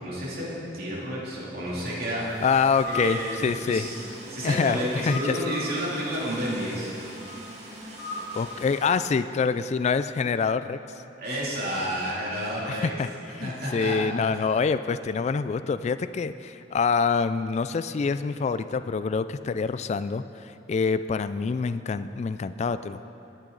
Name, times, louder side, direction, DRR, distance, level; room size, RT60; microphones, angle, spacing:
voice 1, 0.0-2.5 2.8-6.9 11.2-13.0 13.4-14.0, equal, 55° right, -6 dB, 2.8 m, -31 dB
sound 1, 1.6-9.1, right 1 dB, 35° right, 1.9 m, -43 dB
sound 2, 2.3-2.5 2.8-3.3 3.8-4.8 5.0-5.8 7.2-7.4 8.0-8.5, left 2 dB, 85° left, 2.2 m, -37 dB
voice 2, 2.4-3.9 4.4-5.4 8.3-10.8 12.7-13.1 13.4-23.1, left 5 dB, 40° left, 12 dB, 0.3 m, -26 dB
20.5 x 9.1 x 3.9 m, 2.8 s
head